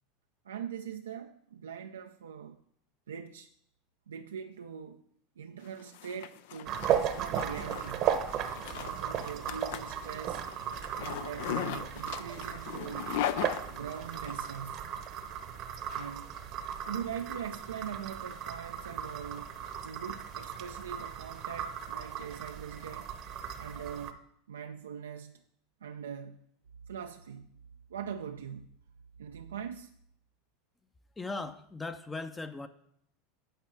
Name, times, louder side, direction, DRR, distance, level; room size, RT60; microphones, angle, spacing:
voice 1, 0.4-2.6 3.1-3.5 4.1-5.0 5.4-8.2 8.6-10.4 11.0-13.2 13.7-15.0 15.9-16.3 16.9-19.6 19.8-23.1 23.6-25.4 25.8-26.5 26.9-27.5 27.9-28.7 29.2-29.9, right 7 dB, 80° right, 0.4 m, -42 dB
Zipper (clothing), 5.7-14.4, left 11 dB, 65° left, 0.4 m, -39 dB
sound 1, 6.7-24.1, right 9 dB, 50° right, 0.8 m, -36 dB
voice 2, 31.2-32.7, left 3 dB, 15° left, 0.6 m, -38 dB
9.2 x 4.3 x 7.4 m
hypercardioid pair, 85°, 0 cm